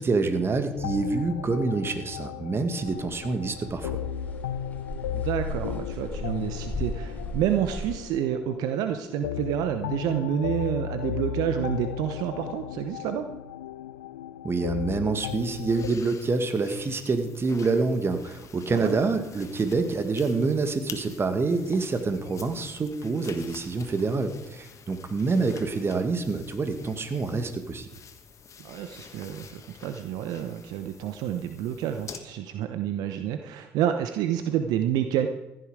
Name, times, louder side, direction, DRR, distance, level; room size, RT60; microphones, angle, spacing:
voice 1, 0.0-4.0 14.4-27.9, right 3 dB, 35° right, 8 dB, 1.8 m, -27 dB
sound 1, 0.8-15.9, left 9 dB, 85° left, 0.4 m, -35 dB
sound 2, 2.8-7.9, left 1 dB, 20° left, 4.3 m, -37 dB
voice 2, 5.1-13.3 18.7-19.0 28.6-35.3, right 10 dB, 70° right, 8 dB, 0.8 m, -29 dB
sound 3, 15.2-32.2, left 6 dB, 45° left, 1.5 m, -48 dB
15.0 x 10.0 x 5.0 m, 0.99 s
hypercardioid pair, 50°, 7 cm